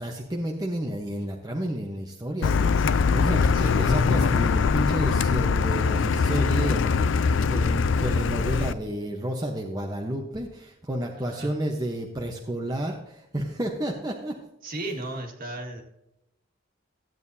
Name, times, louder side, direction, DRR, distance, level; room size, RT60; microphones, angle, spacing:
voice 1, 0.0-14.4, right 1 dB, 20° right, 0 dB, 1.0 m, -31 dB
Car, 2.4-8.7, left 5 dB, 70° left, 0.4 m, -22 dB
voice 2, 3.5-3.9 11.2-11.5 14.6-15.8, right 2 dB, 50° right, 3 dB, 1.9 m, -35 dB
14.5 x 9.2 x 2.7 m, 0.88 s
head